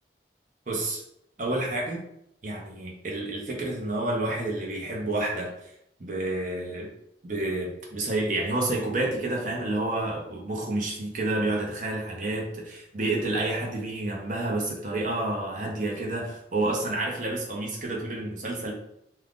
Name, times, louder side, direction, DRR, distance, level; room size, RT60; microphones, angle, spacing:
voice 1, 0.7-1.0 1.4-2.0 2.4-5.5 6.0-6.9 7.2-18.7, right 2 dB, 45° right, -1 dB, 0.7 m, -29 dB
2.4 x 2.3 x 3.4 m, 0.77 s
head